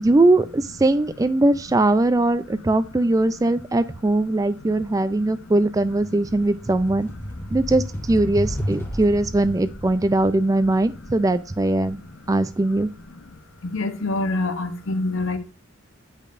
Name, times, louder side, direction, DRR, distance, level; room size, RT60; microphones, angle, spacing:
voice 1, 0.0-7.1 7.5-12.0 12.3-12.9, right 2 dB, 15° right, 0.3 m, -20 dB
sound 1, 4.1-4.3 4.7-13.5, equal, 10° left, 0.9 m, -34 dB
voice 2, 4.7-5.3 11.0-11.1 11.8-12.1 13.1-13.2 13.6-15.4, left 2 dB, 70° left, 0.8 m, -27 dB
8.5 x 5.2 x 2.5 m
head